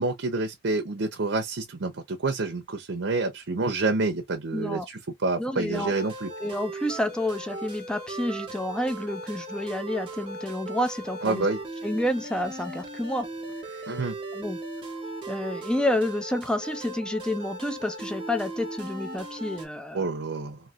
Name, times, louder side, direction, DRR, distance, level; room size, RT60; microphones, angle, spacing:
voice 1, 0.0-6.3 11.2-11.6 13.9-14.2 19.9-20.6, right 3 dB, 75° right, 0.7 m, -28 dB
voice 2, 4.5-4.9 5.4-6.0 6.4-11.5 11.8-13.3 13.8-13.9 14.3-14.6 15.3-20.1, left 1 dB, 5° left, 0.5 m, -29 dB
sound 1, 5.7-19.7, right 2 dB, 25° right, 1.1 m, -38 dB
3.1 x 2.8 x 2.4 m
head